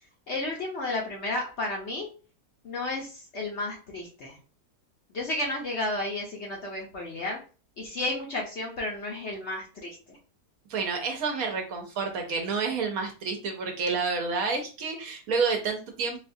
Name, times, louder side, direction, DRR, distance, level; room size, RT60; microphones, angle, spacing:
voice 1, 0.3-2.1 2.6-4.4 5.1-7.4 7.8-10.2, left 2 dB, 55° left, -1 dB, 0.8 m, -32 dB
voice 2, 10.7-16.2, right 4 dB, 65° right, 3 dB, 1.1 m, -29 dB
4.0 x 2.3 x 2.6 m, 0.36 s
omnidirectional pair, 1.7 m